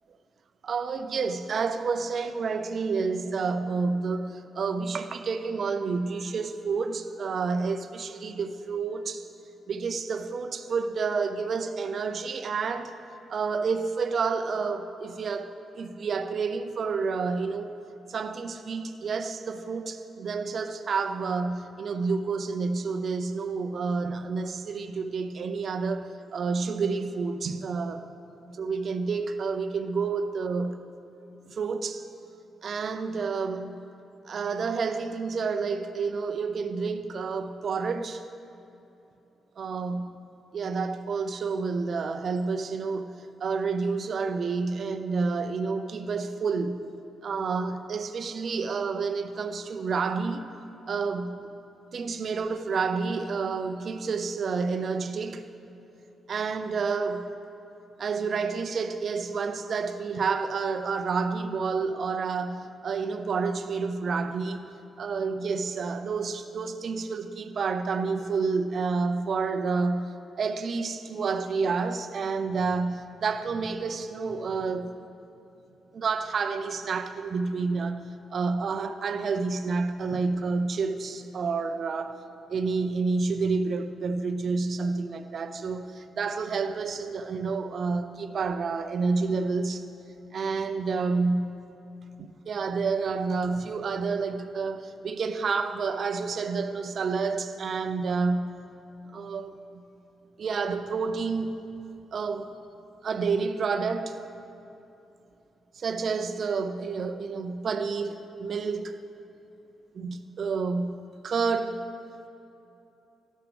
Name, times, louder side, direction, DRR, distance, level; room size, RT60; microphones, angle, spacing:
voice 1, 0.6-9.2 9.7-13.0 13.3-17.8 18.1-28.1 28.5-30.8 31.5-32.1 32.6-33.8 34.3-38.2 39.6-40.2 40.5-46.8 47.2-50.5 50.9-51.4 51.9-55.5 56.3-57.4 58.0-64.6 65.0-74.9 75.9-82.2 82.5-89.8 90.3-91.6 92.2-98.6 99.1-99.8 100.4-101.6 102.1-102.5 103.0-104.3 105.7-109.0 109.9-111.9, right 4 dB, 60° right, 0.6 m, -29 dB
13.0 x 11.5 x 3.4 m
hypercardioid pair, 45°, 0 cm